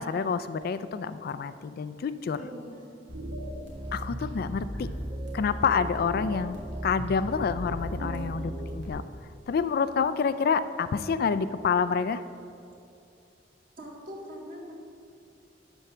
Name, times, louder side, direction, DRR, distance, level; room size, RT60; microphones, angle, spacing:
voice 1, 0.0-2.4 3.9-4.9 5.3-6.6 6.8-9.0 9.5-12.2, left 5 dB, 55° left, 13 dB, 0.3 m, -28 dB
voice 2, 2.3-2.9 8.0-8.3 13.8-14.7, equal, 50° right, -1 dB, 1.9 m, -42 dB
sound 1, 3.1-8.9, equal, 75° right, 2.0 m, -36 dB
11.5 x 4.4 x 7.0 m, 2.6 s
head